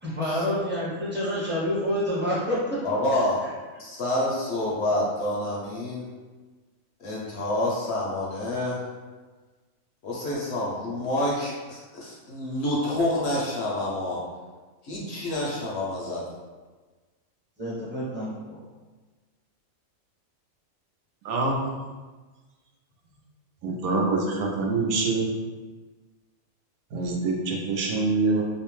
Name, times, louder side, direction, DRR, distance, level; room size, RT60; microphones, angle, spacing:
voice 1, 0.0-2.6 17.6-18.6, equal, 10° right, -8 dB, 0.5 m, -28 dB
voice 2, 2.8-3.4 3.8-6.0 7.0-8.9 10.0-14.2 14.8-16.2, left 1 dB, 65° left, -4 dB, 0.7 m, -28 dB
voice 3, 21.2-21.6 23.6-25.3 26.9-28.4, right 3 dB, 85° right, -1 dB, 1.0 m, -25 dB
2.7 x 2.1 x 3.0 m, 1.3 s
omnidirectional pair, 1.4 m